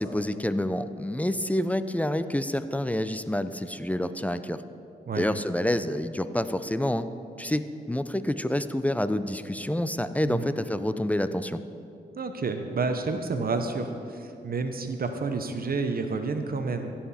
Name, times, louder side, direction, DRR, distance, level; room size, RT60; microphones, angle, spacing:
voice 1, 0.0-4.6 5.2-7.1 7.4-11.6, left 1 dB, 10° left, 11 dB, 0.5 m, -28 dB
voice 2, 12.2-16.9, right 4 dB, 55° right, 6 dB, 0.9 m, -30 dB
16.0 x 5.9 x 4.3 m, 2.6 s
cardioid pair, 50°, 18 cm